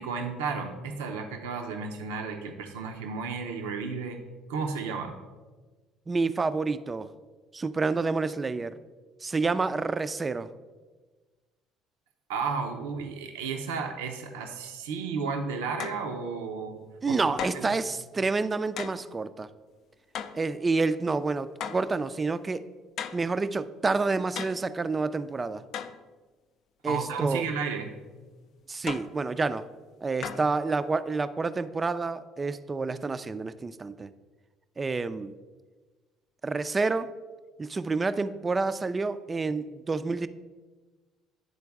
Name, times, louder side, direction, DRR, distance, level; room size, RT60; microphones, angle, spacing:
voice 1, 0.0-4.2 4.5-5.2 12.3-17.8 26.9-27.9, right 5 dB, 85° right, 4 dB, 0.6 m, -33 dB
voice 2, 6.1-7.1 7.5-8.8 9.2-10.5 17.0-19.5 20.3-22.6 23.1-25.6 26.8-27.4 28.7-29.6 30.0-34.1 34.8-35.3 36.4-37.1 37.6-40.3, right 3 dB, 30° right, 13 dB, 0.3 m, -28 dB
sound 1, 15.8-16.1 17.4-17.7 18.8-19.0 20.1-20.5 21.6-21.9 23.0-23.3 24.3-24.7 25.7-26.0 28.9-29.2 30.2-30.6, left 8 dB, 60° left, 0.4 m, -36 dB
9.7 x 3.8 x 3.5 m, 1.3 s
hypercardioid pair, 65°, 0 cm